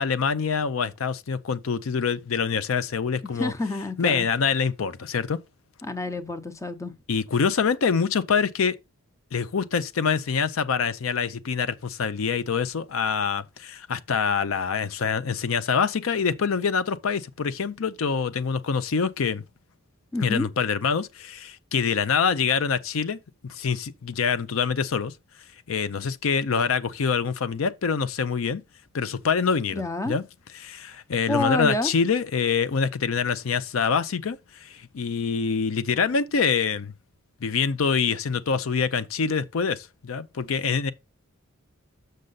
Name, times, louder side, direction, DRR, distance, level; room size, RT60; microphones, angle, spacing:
voice 1, 0.0-3.5 4.0-5.4 7.1-8.8 9.3-19.4 20.2-23.2 23.4-25.1 25.7-28.6 28.9-30.2 30.5-36.9 37.4-40.9, left 6 dB, 80° left, 0.5 m, -25 dB
voice 2, 3.2-4.3 5.8-6.9 20.1-20.5 29.7-30.2 31.3-31.9, left 2 dB, 15° left, 0.7 m, -28 dB
6.6 x 6.5 x 3.9 m
head